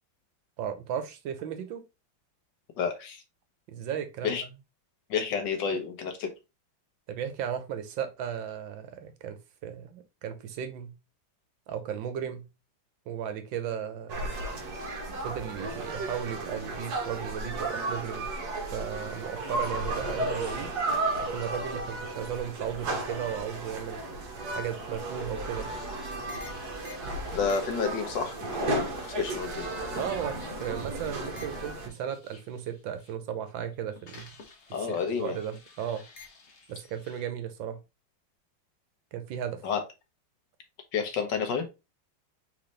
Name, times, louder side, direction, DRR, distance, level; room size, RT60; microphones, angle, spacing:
voice 1, 0.6-1.8 3.7-4.5 7.1-11.0 11.7-12.5 13.1-14.3 15.2-18.3 18.7-20.7 21.2-24.0 24.5-25.7 30.0-34.4 34.8-36.0 36.7-37.8 39.1-39.6, right 9 dB, 75° right, 1.5 m, -35 dB
voice 2, 2.8-3.2 4.2-4.4 5.1-6.3 27.3-29.6 34.7-35.4 39.6-39.8 40.9-41.7, left 6 dB, 65° left, 1.6 m, -30 dB
sound 1, 14.1-31.9, right 2 dB, 60° right, 1.4 m, -34 dB
sound 2, 25.2-33.1 33.5-37.2, left 3 dB, 45° left, 1.1 m, -47 dB
4.2 x 3.9 x 3.2 m
omnidirectional pair, 2.2 m